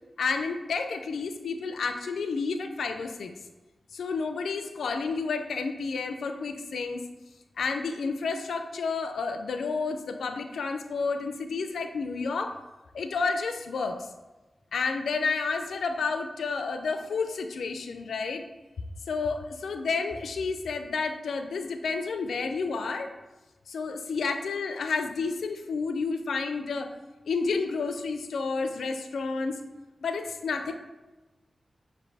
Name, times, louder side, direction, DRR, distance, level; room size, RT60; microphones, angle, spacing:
voice 1, 0.2-3.3 3.9-7.0 7.6-12.5 12.9-14.1 14.7-18.4 19.1-23.1 23.7-26.9 27.3-29.6 30.0-30.7, left 4 dB, 90° left, 7 dB, 0.4 m, -30 dB
6.2 x 2.6 x 3.3 m, 1.1 s
cardioid pair, 40°, 0 cm